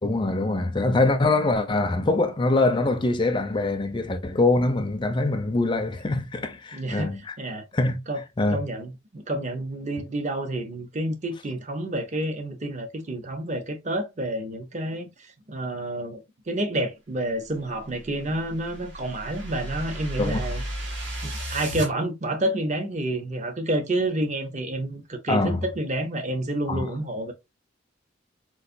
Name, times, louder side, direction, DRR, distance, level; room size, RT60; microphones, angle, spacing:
voice 1, 0.0-7.2 7.7-8.0 8.4-8.6 20.2-20.4 25.3-25.6 26.7-26.9, left 2 dB, 25° left, 0.4 m, -23 dB
voice 2, 6.7-7.6 8.1-8.2 8.5-20.6 21.2-27.3, right 1 dB, 35° right, 0.6 m, -29 dB
sound 1, 17.9-21.9, equal, 65° right, 1.3 m, -34 dB
3.9 x 2.5 x 2.5 m
head